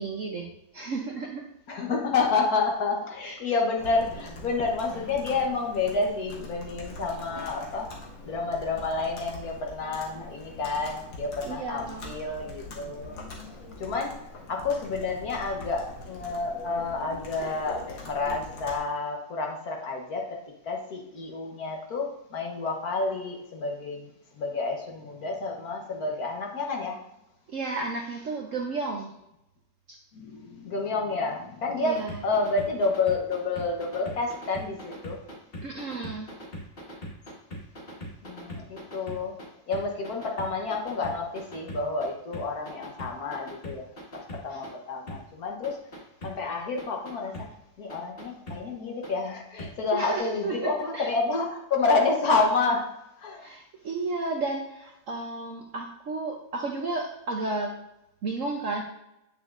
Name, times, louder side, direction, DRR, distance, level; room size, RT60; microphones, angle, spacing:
voice 1, 0.0-1.5 1.8-1.9 3.2-3.4 11.4-12.2 27.5-29.1 29.9-30.0 31.8-32.1 35.6-36.3 44.5-44.6 49.9-51.1 53.4-57.8 58.2-58.8, right 3 dB, 55° right, 0 dB, 0.9 m, -33 dB
voice 2, 1.7-7.9 8.2-13.2 13.8-14.2 14.5-20.4 20.6-24.1 24.4-27.0 30.1-35.2 38.2-39.4 39.7-45.8 46.2-47.5 47.8-52.9 53.2-53.4, left 3 dB, 55° left, 0 dB, 1.5 m, -29 dB
Computer keyboard, 3.8-18.8, left 2 dB, 75° left, 2.1 m, -43 dB
sound 1, 31.8-39.4 39.7-42.1 42.3-44.7 45.1-45.2 45.6-46.3 46.8-47.4 47.9-48.6 49.0-49.1 49.6-49.7 50.1-50.2, equal, 30° left, 1.5 m, -40 dB
8.4 x 7.1 x 2.5 m, 0.84 s
omnidirectional pair, 2.0 m